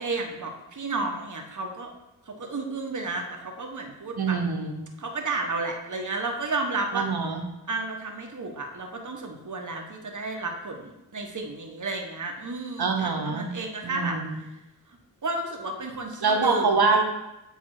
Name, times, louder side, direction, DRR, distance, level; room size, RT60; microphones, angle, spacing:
voice 1, 0.0-1.9 2.3-4.4 5.0-7.1 7.7-14.2 15.2-16.8, right 3 dB, 45° right, 3 dB, 1.2 m, -32 dB
voice 2, 4.2-4.8 6.9-7.4 12.8-13.5 13.8-14.4 16.2-17.0, right 4 dB, 65° right, 3 dB, 1.2 m, -25 dB
7.5 x 3.6 x 4.8 m, 0.95 s
cardioid pair, 40°, 41 cm